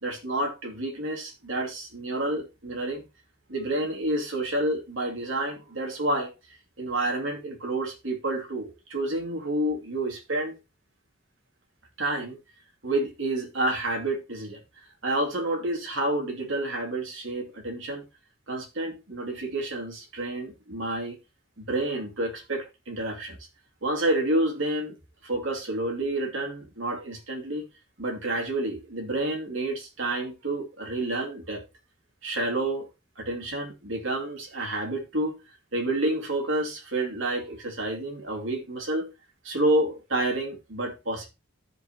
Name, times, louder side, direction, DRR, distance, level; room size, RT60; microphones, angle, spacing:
voice 1, 0.0-3.1 3.5-10.6 12.0-12.4 12.8-14.6 15.0-18.1 18.5-21.2 21.6-23.4 23.8-25.0 25.2-27.7 28.0-31.6 32.2-32.9 33.2-35.4 35.7-39.1 39.4-41.3, right 1 dB, 75° right, 2.5 m, -29 dB
14.0 x 5.4 x 2.9 m
head